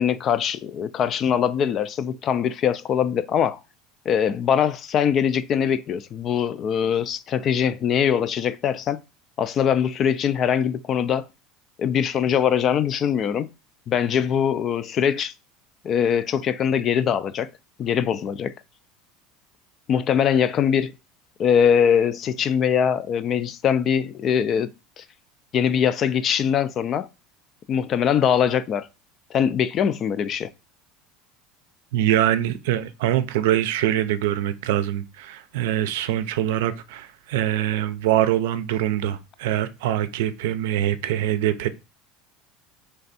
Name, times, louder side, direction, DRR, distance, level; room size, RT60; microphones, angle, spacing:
voice 1, 0.0-3.6 4.1-9.0 9.4-11.2 11.8-13.5 13.9-15.3 15.8-17.5 17.8-18.5 19.9-20.9 21.4-24.7 25.0-25.1 25.5-27.1 27.7-28.9 29.3-30.5, left 8 dB, 35° left, 0.3 m, -22 dB
voice 2, 31.9-41.7, right 12 dB, 90° right, 0.5 m, -23 dB
3.4 x 3.4 x 4.0 m
cardioid pair, 150°, 0 cm